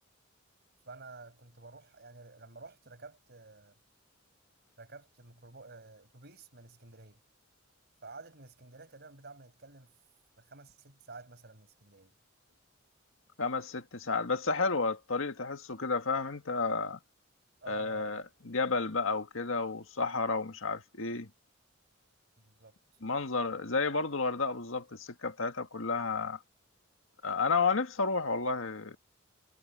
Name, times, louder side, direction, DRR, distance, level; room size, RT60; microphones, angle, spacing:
voice 1, 0.9-3.8 4.8-7.2 8.0-9.9 10.4-12.1 17.6-18.2 22.4-22.8, right 3 dB, 55° right, 5.2 m, -50 dB
voice 2, 13.4-17.0 17.7-21.3 23.0-26.4 27.2-29.0, left 4 dB, 80° left, 1.8 m, -31 dB
head